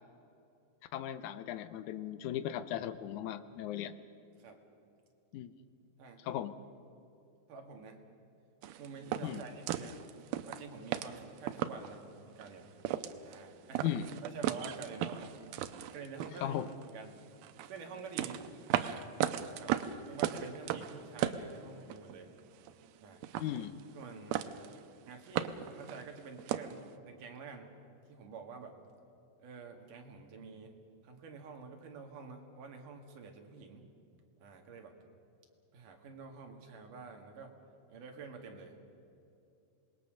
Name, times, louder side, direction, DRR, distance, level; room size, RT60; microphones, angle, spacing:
voice 1, 0.9-3.9 5.3-5.5 6.2-6.5 9.2-9.4 13.8-14.1 16.4-16.7 23.4-23.8, left 11 dB, 75° left, 12 dB, 1.9 m, -37 dB
voice 2, 7.5-8.1 8.8-10.1 10.5-12.7 13.2-13.9 14.2-15.4 15.9-16.6 16.9-17.2 17.7-18.5 18.8-19.1 19.6-22.3 23.0-23.2 23.9-24.5 25.1-27.8 28.1-28.8 29.4-33.9 34.4-34.9 35.7-37.5 37.9-38.8, right 5 dB, 65° right, 3 dB, 3.5 m, -48 dB
sound 1, 8.6-12.0 12.4-12.5 12.8-13.4 13.7-16.9 17.4-22.1 22.4-23.0 23.2-24.1 24.3-24.8 25.1-26.8, right 11 dB, 90° right, 2.7 m, -36 dB
26.5 x 20.5 x 6.5 m, 2.7 s
omnidirectional pair, 4.2 m